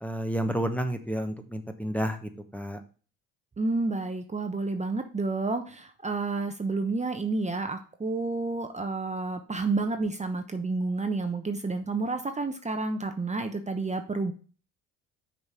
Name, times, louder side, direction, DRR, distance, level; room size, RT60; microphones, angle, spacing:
voice 1, 0.0-2.8, equal, 5° left, 5 dB, 1.0 m, -30 dB
voice 2, 3.6-14.3, right 3 dB, 20° right, 7 dB, 0.9 m, -30 dB
6.4 x 4.1 x 6.2 m, 0.38 s
supercardioid pair, 70°, 34 cm